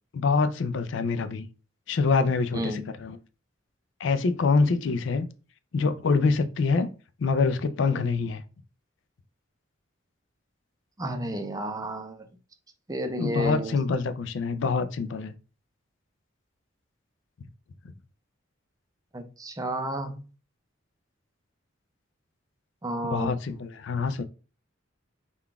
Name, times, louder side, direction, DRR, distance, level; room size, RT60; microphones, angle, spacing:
voice 1, 0.1-1.5 1.9-3.2 4.0-5.3 5.7-6.9 7.2-8.4 13.2-15.3 23.0-24.2, left 4 dB, 65° left, 0.4 m, -25 dB
voice 2, 2.5-2.9 7.9-8.1 11.0-12.2 12.9-13.7 19.1-20.2 22.8-23.3, right 1 dB, 20° right, 0.5 m, -31 dB
3.8 x 2.3 x 3.4 m
head